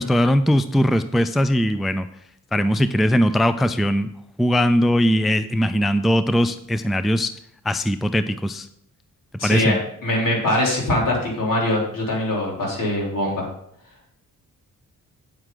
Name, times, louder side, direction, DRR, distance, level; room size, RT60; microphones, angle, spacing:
voice 1, 0.0-2.1 2.5-4.1 4.4-7.3 7.7-8.7 9.4-9.8, equal, ahead, 11 dB, 0.4 m, -20 dB
voice 2, 9.4-13.5, left 1 dB, 65° left, -3 dB, 3.8 m, -22 dB
8.7 x 7.8 x 3.9 m, 0.73 s
cardioid pair, 70°, 34 cm